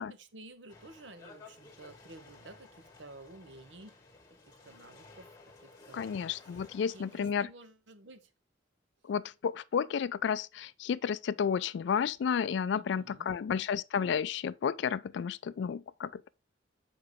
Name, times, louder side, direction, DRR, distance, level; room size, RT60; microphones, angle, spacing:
voice 1, 0.0-3.9 4.3-8.3 12.7-13.3, right 2 dB, 70° right, 0.9 m, -53 dB
sound 1, 0.7-7.2, left 3 dB, 20° left, 1.5 m, -55 dB
voice 2, 5.9-7.5 9.1-16.3, left 7 dB, 65° left, 0.3 m, -32 dB
6.7 x 4.7 x 3.5 m
head